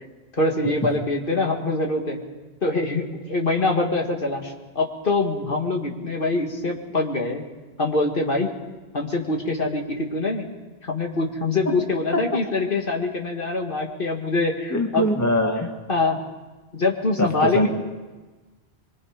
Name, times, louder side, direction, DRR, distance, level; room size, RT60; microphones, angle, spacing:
voice 1, 0.4-2.2 2.6-7.4 7.8-8.5 8.9-10.5 10.8-15.1 15.9-16.2 16.7-17.7, left 2 dB, 55° left, 1 dB, 2.0 m, -24 dB
voice 2, 14.7-15.7 17.2-17.7, equal, 15° left, 3 dB, 1.7 m, -23 dB
24.0 x 22.0 x 5.1 m, 1.2 s
omnidirectional pair, 1.1 m